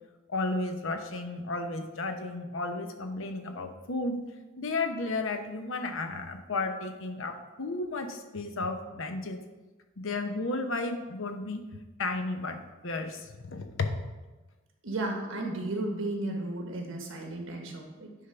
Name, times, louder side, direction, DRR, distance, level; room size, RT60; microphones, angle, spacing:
voice 1, 0.3-4.2 4.6-9.4 10.0-11.6 12.0-13.9, left 3 dB, 70° left, 6 dB, 0.9 m, -33 dB
voice 2, 14.8-18.1, right 2 dB, 70° right, 1 dB, 1.6 m, -34 dB
10.0 x 3.7 x 5.7 m, 1.2 s
head